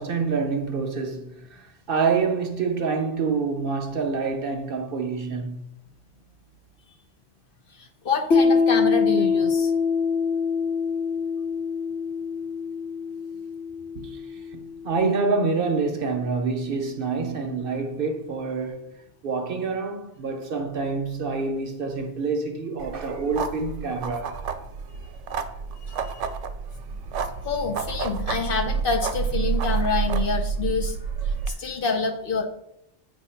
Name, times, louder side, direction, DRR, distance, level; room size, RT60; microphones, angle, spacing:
voice 1, 0.0-5.7 13.9-14.2 14.5-18.9 19.2-24.4, right 4 dB, 55° right, 0.8 m, -27 dB
voice 2, 7.7-9.7 25.9-26.2 27.4-31.0 31.2-32.5, left 4 dB, 55° left, 0.8 m, -27 dB
Piano, 8.3-15.6, left 5 dB, 70° left, 1.2 m, -25 dB
sound 1, 22.8-31.5, right 6 dB, 85° right, 0.9 m, -29 dB
8.1 x 2.7 x 5.6 m
omnidirectional pair, 1.2 m